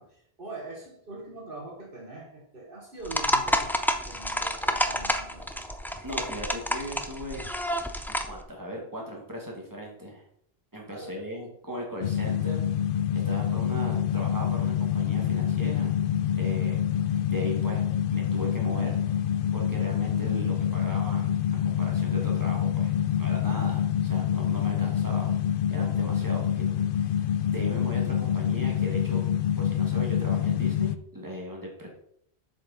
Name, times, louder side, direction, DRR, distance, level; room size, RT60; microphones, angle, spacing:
voice 1, 0.0-6.0 10.9-11.2, right 2 dB, 55° right, -1 dB, 1.6 m, -43 dB
sound 1, 3.0-8.4, equal, 5° left, 0.5 m, -29 dB
voice 2, 6.0-7.4 8.1-10.2 10.7-12.7 13.1-16.0 16.3-16.8 17.3-17.9 18.1-19.0 19.5-21.3 21.6-22.9 23.2-25.4 25.7-27.2 27.5-29.3 29.6-31.9, equal, 20° right, -1 dB, 2.2 m, -38 dB
sound 2, 12.0-31.0, left 9 dB, 65° left, 0.7 m, -26 dB
7.6 x 6.8 x 4.3 m, 0.70 s
omnidirectional pair, 1.1 m